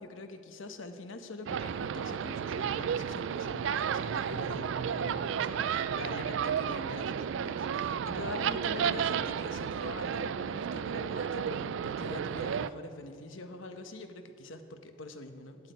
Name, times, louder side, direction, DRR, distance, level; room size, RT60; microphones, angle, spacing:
voice 1, 0.0-15.7, left 2 dB, 75° left, 7 dB, 1.0 m, -44 dB
sound 1, 1.5-12.7, right 7 dB, 65° right, 0.3 m, -32 dB
8.9 x 8.1 x 9.1 m, 2.6 s
head